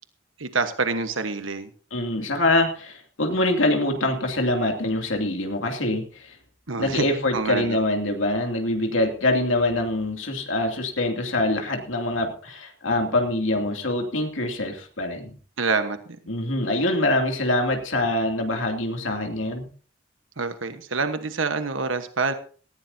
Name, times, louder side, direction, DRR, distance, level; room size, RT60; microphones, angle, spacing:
voice 1, 0.4-1.7 6.7-7.1 7.3-7.8 15.6-16.0 20.4-22.3, right 4 dB, 90° right, 9 dB, 1.3 m, -26 dB
voice 2, 1.9-6.4 6.8-15.3 16.3-19.7, left 1 dB, 85° left, 3 dB, 2.7 m, -24 dB
18.5 x 15.0 x 2.8 m, 0.42 s
head